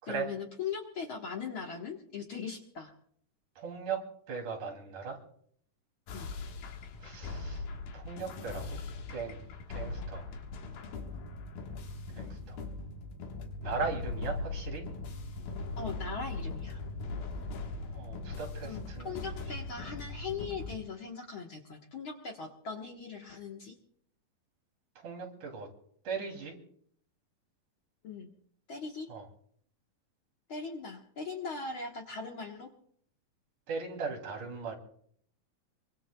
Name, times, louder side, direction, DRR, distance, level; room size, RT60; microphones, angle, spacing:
voice 1, 0.1-2.9 6.1-6.3 10.0-10.1 15.8-16.8 18.6-18.8 19.0-23.7 28.0-28.3 28.7-29.1 30.5-32.7, left 5 dB, 55° left, 1 dB, 1.4 m, -40 dB
voice 2, 3.6-4.0 4.3-5.2 7.0-7.6 7.9-8.8 9.1-9.4 9.7-10.3 12.2-12.6 13.6-14.8 17.9-19.2 25.0-25.7 26.0-26.6 29.1-29.3 33.7-34.7, right 5 dB, 60° right, 1 dB, 4.3 m, -38 dB
sound 1, 6.1-20.8, left 3 dB, 75° left, 3.2 m, -40 dB
24.0 x 24.0 x 2.3 m, 0.62 s
omnidirectional pair, 4.1 m